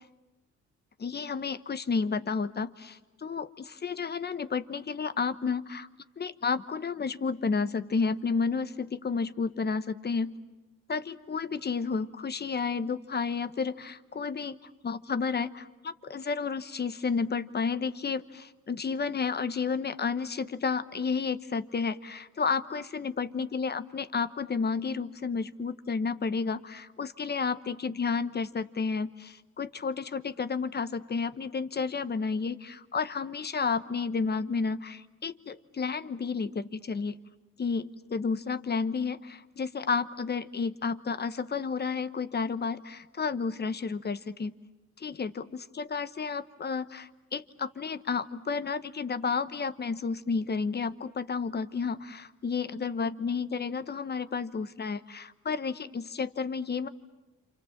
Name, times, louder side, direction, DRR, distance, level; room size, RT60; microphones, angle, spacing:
voice 1, 1.0-5.9 6.2-10.3 10.9-37.2 37.6-44.5 45.0-56.9, left 5 dB, 35° left, 12 dB, 1.1 m, -31 dB
28.0 x 27.5 x 7.4 m, 1.1 s
cardioid pair, 90°, 30 cm